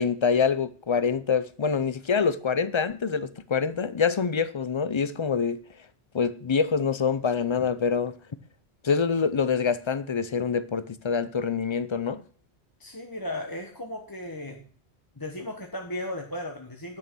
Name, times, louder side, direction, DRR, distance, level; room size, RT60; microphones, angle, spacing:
voice 1, 0.0-5.6 6.1-8.1 8.8-12.2, left 6 dB, 35° left, 0.5 m, -25 dB
voice 2, 12.8-14.6 15.2-17.0, left 1 dB, 20° left, 1.2 m, -35 dB
9.8 x 6.4 x 6.1 m
omnidirectional pair, 1.1 m